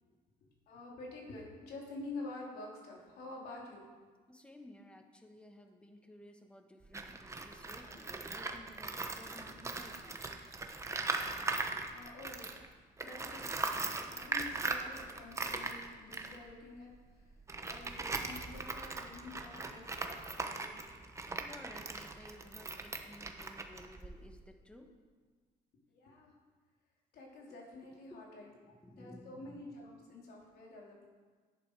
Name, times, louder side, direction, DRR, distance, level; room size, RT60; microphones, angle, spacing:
voice 1, 0.7-3.8 11.9-17.3 17.7-20.8 25.9-26.3 27.1-31.0, left 2 dB, 70° left, -2 dB, 3.4 m, -49 dB
voice 2, 4.3-10.2 21.4-24.9 27.5-27.6 27.9-29.6, left 1 dB, 5° left, 4 dB, 1.4 m, -55 dB
Tools, 6.8-12.7 13.0-24.4, right 3 dB, 15° right, 1.0 m, -40 dB
11.5 x 10.5 x 4.8 m, 1.4 s
cardioid pair, 110°, 17 cm